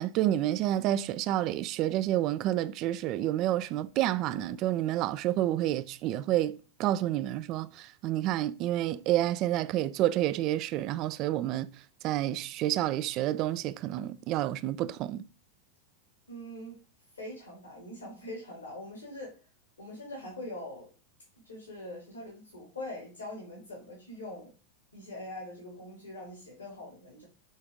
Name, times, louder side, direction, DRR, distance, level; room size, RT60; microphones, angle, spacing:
voice 1, 0.0-11.7 12.0-15.2, right 13 dB, 40° right, 0.4 m, -29 dB
voice 2, 16.3-16.8 17.1-19.4 19.8-20.9 21.4-24.5 24.9-27.2, left 1 dB, 75° left, 2.4 m, -43 dB
7.3 x 3.8 x 3.5 m
figure-of-eight pair, 90°, 0 cm